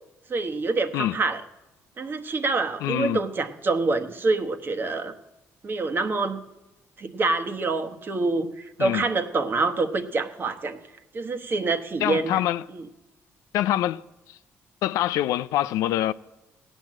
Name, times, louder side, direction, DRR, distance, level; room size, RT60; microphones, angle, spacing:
voice 1, 0.3-1.4 2.0-5.1 5.6-6.4 7.0-10.8 11.1-12.4 12.7-12.8, right 3 dB, 40° right, 1.2 m, -26 dB
voice 2, 2.8-3.2 8.8-9.0 12.0-12.7 13.5-14.0 14.3-14.4 14.8-16.1, left 13 dB, 85° left, 0.4 m, -25 dB
16.0 x 9.2 x 7.4 m
cardioid pair, 90°, 6 cm